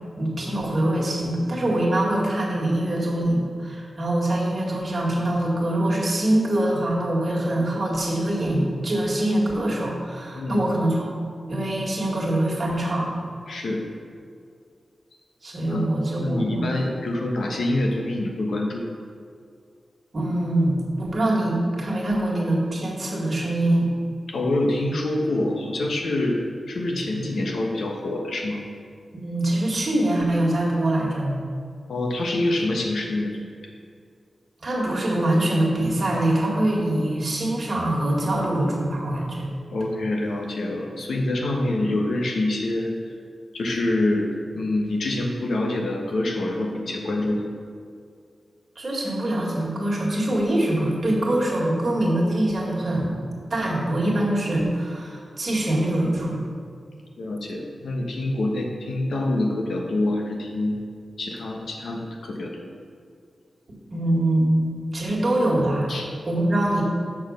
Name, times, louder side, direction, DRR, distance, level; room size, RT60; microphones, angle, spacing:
voice 1, 0.2-11.1 11.5-13.1 15.4-16.7 20.1-23.9 29.1-31.3 34.6-39.5 48.8-53.2 53.5-56.4 63.9-65.9 66.2-66.8, right 1 dB, 40° right, -3 dB, 1.9 m, -23 dB
voice 2, 13.5-13.8 15.6-15.8 16.2-18.9 24.3-26.4 26.7-28.6 31.9-33.5 39.7-42.9 43.5-47.4 57.2-60.8 61.2-62.7 65.9-66.1, left 1 dB, 85° left, 1 dB, 1.1 m, -26 dB
6.5 x 6.2 x 6.4 m, 2.2 s
wide cardioid pair, 130°, 0 cm